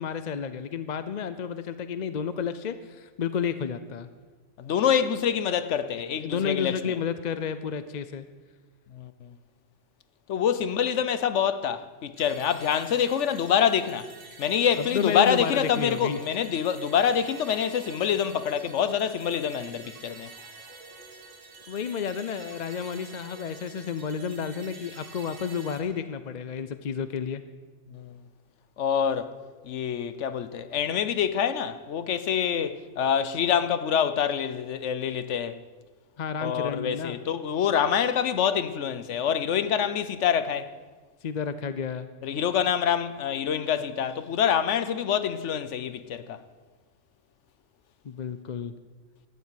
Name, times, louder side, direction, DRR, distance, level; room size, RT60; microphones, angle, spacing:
voice 1, 0.0-4.1 6.2-8.3 14.8-16.2 21.7-27.4 36.2-37.2 41.2-42.1 48.0-48.7, left 7 dB, 50° left, 0.6 m, -31 dB
voice 2, 4.6-6.8 8.9-9.3 10.3-14.1 14.4-20.3 27.9-28.2 28.8-29.3 29.6-35.6 36.4-40.7 42.2-46.4, left 8 dB, 70° left, 1.1 m, -26 dB
sound 1, 12.2-25.8, right 3 dB, 90° right, 2.3 m, -47 dB
12.5 x 8.4 x 9.3 m
omnidirectional pair, 1.3 m